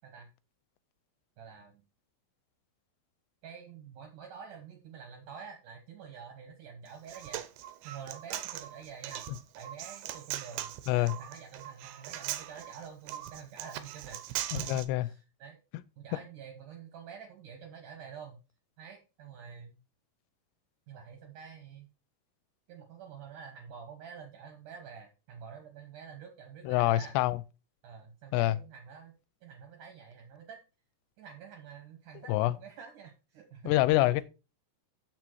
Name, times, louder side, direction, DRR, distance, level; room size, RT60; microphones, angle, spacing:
voice 1, 1.4-1.8 3.4-7.5 7.8-9.2 9.6-15.6 16.0-18.4 18.8-19.8 20.9-21.9 22.7-27.1 27.8-29.1 29.4-30.6 31.2-33.7, right 7 dB, 65° right, 2.3 m, -48 dB
Human voice, 6.9-14.8, right 12 dB, 80° right, 2.4 m, -40 dB
voice 2, 14.5-15.1 26.7-27.4 28.3-28.6 32.3-32.6 33.7-34.2, left 16 dB, 85° left, 2.6 m, -26 dB
7.2 x 6.2 x 4.6 m
omnidirectional pair, 5.0 m